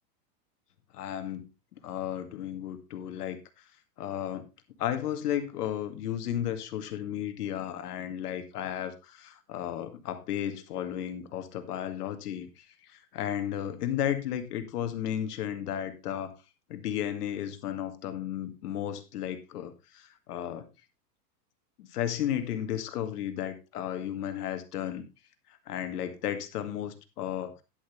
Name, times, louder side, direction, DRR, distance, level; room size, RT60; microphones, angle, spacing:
voice 1, 0.9-1.5 1.8-3.4 4.0-4.4 4.8-12.6 13.1-16.4 16.7-20.7 21.8-25.1 25.7-27.5, left 10 dB, 70° left, 9 dB, 2.2 m, -33 dB
11.0 x 11.0 x 3.3 m, 0.26 s
hypercardioid pair, 140°, 48 cm